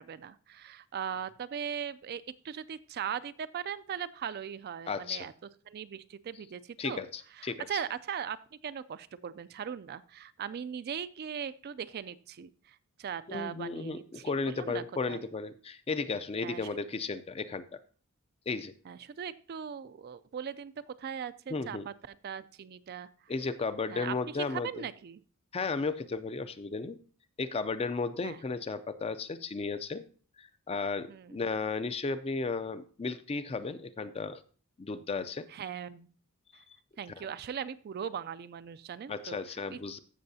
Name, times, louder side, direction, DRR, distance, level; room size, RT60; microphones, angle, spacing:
voice 1, 0.0-5.3 5.7-7.0 7.4-15.2 16.4-16.7 18.9-20.7 21.0-23.1 23.9-25.2 28.2-28.4 31.1-31.4 35.5-36.1 36.5-36.6 37.0-39.4 39.7-40.0, right 8 dB, 45° right, 15 dB, 0.3 m, -39 dB
voice 2, 4.9-5.3 6.8-7.8 13.3-17.8 18.5-18.7 21.5-21.9 23.3-24.8 25.5-27.0 27.4-30.0 30.4-34.4 34.8-35.5 36.7-36.8 37.2-37.3 39.1-40.0, left 4 dB, 25° left, 12 dB, 0.4 m, -34 dB
14.5 x 6.3 x 2.7 m, 0.42 s
head